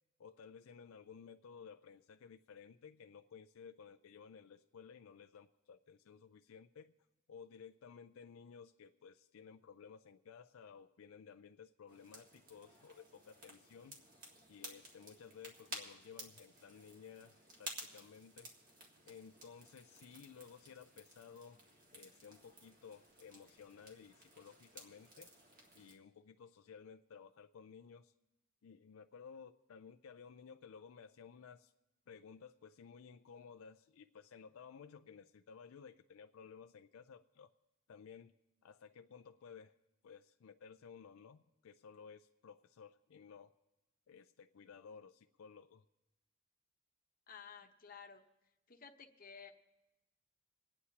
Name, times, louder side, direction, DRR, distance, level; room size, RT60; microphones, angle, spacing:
voice 1, 0.2-6.9 7.3-14.0 14.5-18.5 19.0-21.6 21.9-25.3 25.7-28.1 28.6-31.7 32.1-37.5 37.9-38.3 38.6-39.7 40.0-43.5 44.1-45.8, left 6 dB, 85° left, 7 dB, 0.4 m, -56 dB
sound 1, 11.9-25.9, right 1 dB, 45° right, 1.9 m, -54 dB
voice 2, 47.3-48.2 48.7-49.5, left 6 dB, 45° left, 4 dB, 1.0 m, -54 dB
28.0 x 9.6 x 2.9 m, 0.99 s
head